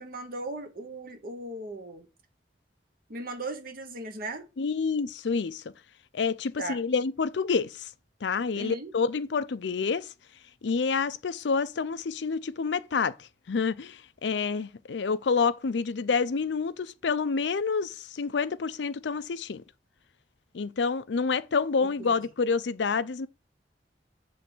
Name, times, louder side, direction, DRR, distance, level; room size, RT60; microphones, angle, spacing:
voice 1, 0.0-2.1 3.1-4.5 6.6-6.8 8.5-8.9 22.0-22.1, right 2 dB, 55° right, 1.1 m, -37 dB
voice 2, 4.6-5.6 6.1-7.9 8.2-10.1 10.6-19.6 20.5-23.3, left 5 dB, 85° left, 0.5 m, -28 dB
7.7 x 3.4 x 6.0 m
head